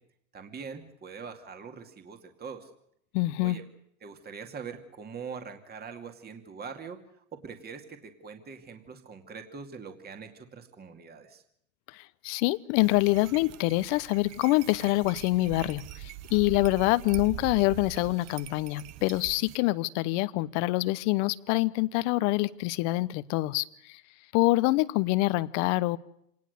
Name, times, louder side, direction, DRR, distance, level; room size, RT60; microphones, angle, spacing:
voice 1, 0.3-2.7 3.4-3.6 4.0-11.4, right 5 dB, 20° right, 6 dB, 2.4 m, -43 dB
voice 2, 3.1-3.6 11.9-24.0 24.3-26.0, left 20 dB, 55° left, 18 dB, 1.1 m, -26 dB
sound 1, 12.7-19.6, right 13 dB, 35° right, 1.1 m, -43 dB
26.5 x 19.5 x 6.7 m, 0.74 s
hypercardioid pair, 110°, 42 cm